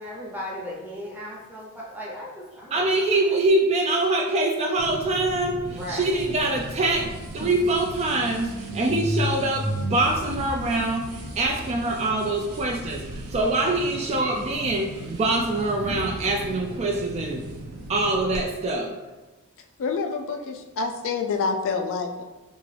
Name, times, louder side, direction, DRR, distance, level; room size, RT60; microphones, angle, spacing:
voice 1, 0.0-2.9 5.7-6.1, left 1 dB, 10° right, -4 dB, 0.7 m, -36 dB
voice 2, 2.7-17.4 17.9-18.9, right 2 dB, 30° right, 1 dB, 0.3 m, -24 dB
sound 1, 4.8-18.4, right 1 dB, 90° right, 0.7 m, -34 dB
voice 3, 19.8-22.2, left 4 dB, 60° left, 4 dB, 0.3 m, -27 dB
3.5 x 2.5 x 3.3 m, 1.2 s
head